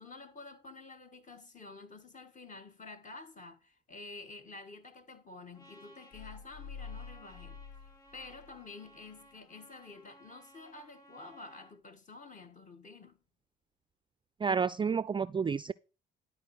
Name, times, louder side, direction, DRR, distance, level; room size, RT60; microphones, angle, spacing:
voice 1, 0.0-7.6 8.1-13.2, left 3 dB, 40° left, 1.6 m, -50 dB
Trumpet, 5.5-11.8, equal, 20° left, 4.7 m, -59 dB
sound 1, 6.1-8.7 9.0-9.1, left 6 dB, 85° left, 2.6 m, -48 dB
voice 2, 14.4-15.7, right 6 dB, 25° right, 0.4 m, -30 dB
11.5 x 4.4 x 6.4 m
hypercardioid pair, 50°, 20 cm